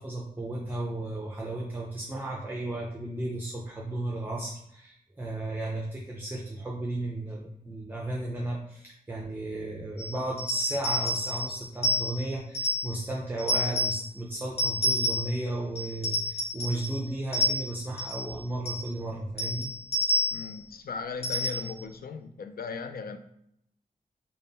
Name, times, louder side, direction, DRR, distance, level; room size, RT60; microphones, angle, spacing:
voice 1, 0.0-19.7, right 1 dB, 10° right, -3 dB, 0.5 m, -34 dB
sound 1, 10.0-13.0 13.4-14.1 14.6-15.4 15.7-17.0 17.3-18.3 18.7-18.9 19.4-20.5 21.2-21.8, equal, 40° left, 0.9 m, -29 dB
voice 2, 20.3-23.2, left 5 dB, 70° left, 8 dB, 0.4 m, -37 dB
3.6 x 2.2 x 3.9 m, 0.73 s
wide cardioid pair, 115°, 16 cm